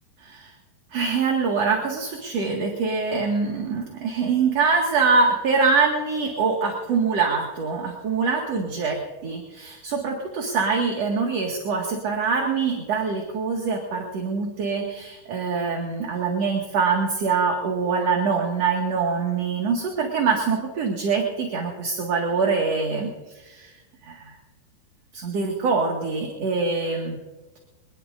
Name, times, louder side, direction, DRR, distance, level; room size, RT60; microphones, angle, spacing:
voice 1, 0.2-0.5 0.9-23.7 24.0-24.3 25.1-27.2, right 4 dB, 50° right, 0 dB, 2.7 m, -24 dB
24.5 x 20.0 x 2.6 m, 1.2 s
omnidirectional pair, 4.4 m